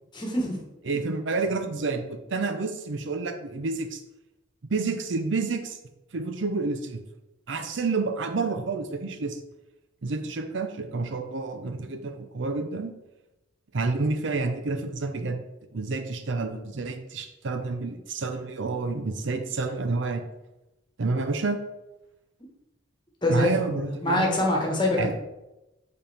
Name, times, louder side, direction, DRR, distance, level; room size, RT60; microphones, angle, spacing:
voice 1, 0.1-0.6 23.2-25.1, left 1 dB, 25° left, -2 dB, 1.3 m, -25 dB
voice 2, 0.9-4.0 4.7-5.8 6.1-7.0 7.5-9.4 10.0-12.9 13.7-15.4 15.7-20.2 21.0-21.6 23.3-24.4 25.0-25.1, right 3 dB, 70° right, 7 dB, 0.6 m, -29 dB
7.9 x 4.3 x 3.4 m, 0.97 s
head